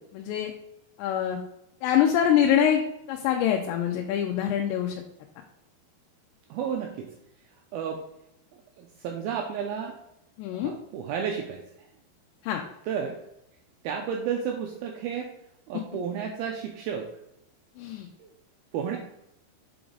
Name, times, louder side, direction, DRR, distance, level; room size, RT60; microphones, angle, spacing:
voice 1, 0.1-0.5 1.0-1.4 1.8-2.8 3.1-5.0 10.4-10.7 12.4-12.6 17.8-18.1, left 9 dB, 85° left, 2 dB, 2.9 m, -24 dB
voice 2, 6.5-7.1 7.7-8.0 8.8-10.0 10.5-11.6 12.9-13.2 13.8-15.3 15.7-17.1 18.2-18.3 18.7-19.0, right 7 dB, 90° right, 2 dB, 2.2 m, -32 dB
7.0 x 4.7 x 3.8 m, 0.82 s
omnidirectional pair, 5.0 m